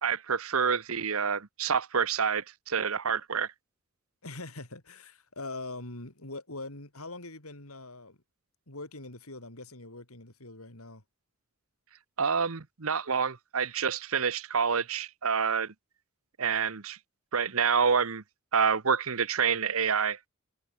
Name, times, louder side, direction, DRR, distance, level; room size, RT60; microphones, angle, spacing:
voice 1, 0.0-3.5 12.2-15.7 16.4-17.0 17.3-18.2 18.5-20.2, right 6 dB, 75° right, 1.1 m, -27 dB
voice 2, 4.2-8.2 8.7-11.0, left 2 dB, 85° left, 5.1 m, -42 dB
head